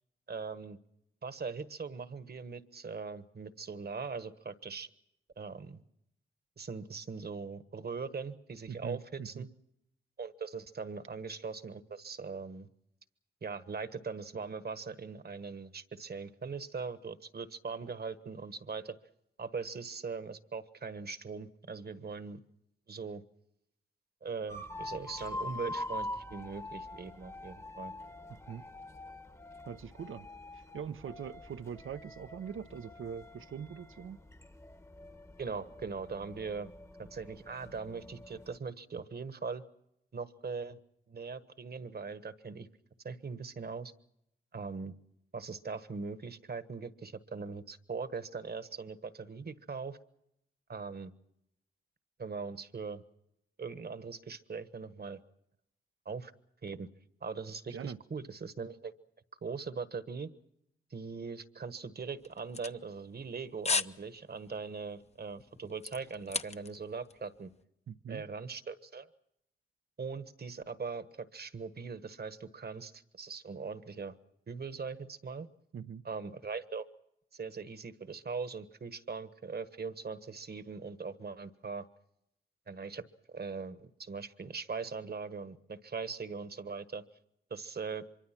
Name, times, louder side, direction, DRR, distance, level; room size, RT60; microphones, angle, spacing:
voice 1, 0.3-0.8 1.2-4.9 5.4-5.8 6.6-9.5 10.2-12.7 13.4-18.9 19.4-22.4 22.9-23.2 24.2-27.9 35.4-36.7 37.1-39.6 40.1-40.8 41.1-42.7 43.0-43.9 44.5-44.9 45.3-50.0 50.7-51.1 52.2-53.0 53.6-55.2 56.0-56.3 56.6-56.9 57.2-58.9 59.4-60.3 60.9-67.5 68.1-69.1 70.0-74.1 74.5-75.5 76.0-76.8 77.3-81.9 82.7-87.0 87.5-88.0, right 5 dB, 50° right, 12 dB, 1.4 m, -40 dB
voice 2, 8.7-9.5 28.5-28.6 29.6-30.3 30.5-34.2 57.7-58.0 67.9-68.2 75.7-76.0, right 7 dB, 75° right, 13 dB, 0.8 m, -42 dB
sound 1, 24.5-38.6, left 1 dB, 15° left, 1.1 m, -45 dB
sound 2, 62.2-63.3 63.6-64.0 64.3-64.6 65.1-66.9 67.1-67.2, left 4 dB, 30° left, 0.8 m, -34 dB
25.0 x 23.5 x 6.0 m, 0.79 s
cardioid pair, 70°, 21 cm